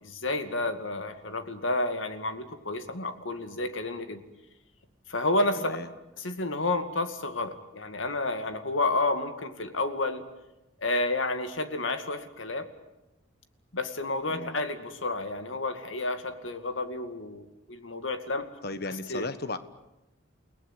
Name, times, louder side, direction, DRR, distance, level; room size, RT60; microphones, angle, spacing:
voice 1, 0.0-4.2 5.1-5.7 6.2-10.2 10.8-12.7 13.7-18.5 18.9-19.3, left 2 dB, 85° left, 8 dB, 2.3 m, -30 dB
voice 2, 5.5-5.9 14.3-14.6 18.6-19.6, left 2 dB, 55° left, 12 dB, 1.3 m, -35 dB
29.5 x 18.5 x 9.9 m, 0.95 s
head